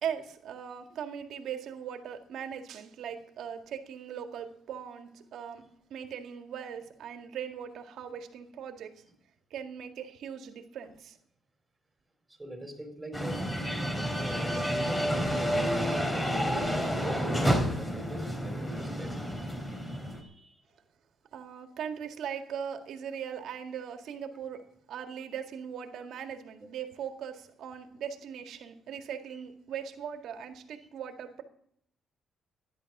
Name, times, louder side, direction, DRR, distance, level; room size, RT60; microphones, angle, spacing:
voice 1, 0.0-5.6 5.9-8.9 9.5-11.2 21.3-24.6 24.9-31.4, right 8 dB, 75° right, 6 dB, 1.9 m, -39 dB
voice 2, 12.4-13.4 13.8-20.8 28.6-28.7, right 1 dB, 15° right, 4 dB, 4.2 m, -44 dB
sound 1, 13.1-20.2, equal, 10° left, 3.3 m, -30 dB
14.0 x 10.5 x 6.0 m, 0.66 s
cardioid pair, 90°, 0 cm